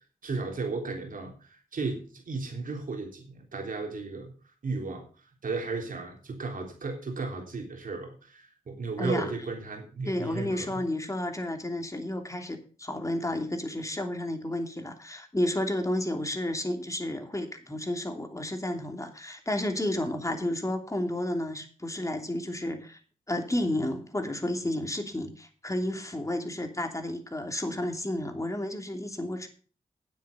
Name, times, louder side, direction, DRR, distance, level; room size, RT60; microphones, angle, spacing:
voice 1, 0.2-4.3 4.6-5.1 5.4-10.8, right 3 dB, 70° right, 2 dB, 3.6 m, -34 dB
voice 2, 9.0-9.3 10.0-23.0 23.3-29.5, left 1 dB, 20° left, 5 dB, 3.0 m, -31 dB
9.3 x 8.0 x 6.8 m, 0.39 s
cardioid pair, 40°, 15 cm